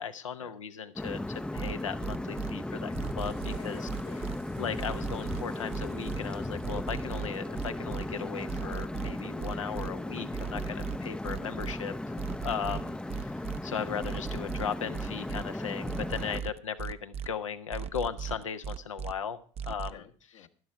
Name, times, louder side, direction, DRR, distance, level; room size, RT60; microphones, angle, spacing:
voice 1, 0.0-3.9 4.6-12.1 12.4-20.0, left 7 dB, 90° left, 9 dB, 0.9 m, -37 dB
sound 1, 1.0-16.4, left 1 dB, 5° left, 0.5 m, -36 dB
sound 2, 1.6-2.5 2.9-4.4 4.8-6.2 6.6-8.0 8.5-9.9 10.3-11.7 12.2-13.6 14.0-15.4 15.9-17.3 17.7-19.1 19.6-19.9, right 8 dB, 40° right, 0.6 m, -36 dB
Water / Toilet flush, 2.8-7.9, right 10 dB, 75° right, 1.7 m, -57 dB
voice 2, 3.4-4.4 11.4-12.3 16.3-16.5 19.9-20.5, left 11 dB, 75° left, 5 dB, 1.4 m, -52 dB
12.0 x 11.0 x 4.6 m, 0.44 s
hypercardioid pair, 65°, 16 cm